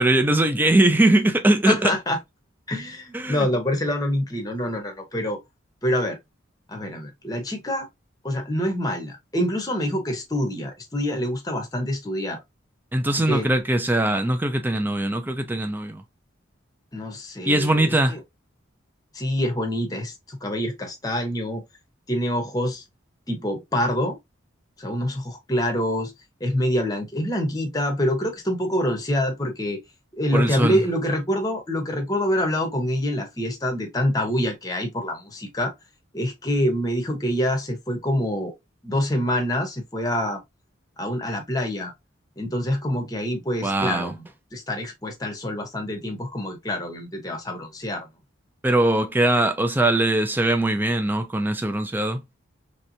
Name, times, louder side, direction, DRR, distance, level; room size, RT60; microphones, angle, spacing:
voice 1, 0.0-1.9 3.1-3.5 12.9-16.0 17.5-18.2 30.3-30.8 43.6-44.1 48.6-52.2, right 1 dB, 10° right, 0.4 m, -21 dB
voice 2, 1.6-2.2 2.7-5.4 5.8-6.2 6.7-7.9 8.2-12.4 13.1-13.5 16.9-18.2 19.1-21.6 22.1-22.8 23.3-24.2 24.8-26.1 26.4-29.8 30.1-35.7 36.1-38.5 38.8-40.4 41.0-41.9 42.4-44.2 44.5-48.1, left 1 dB, 20° left, 0.8 m, -26 dB
3.2 x 2.9 x 2.6 m
head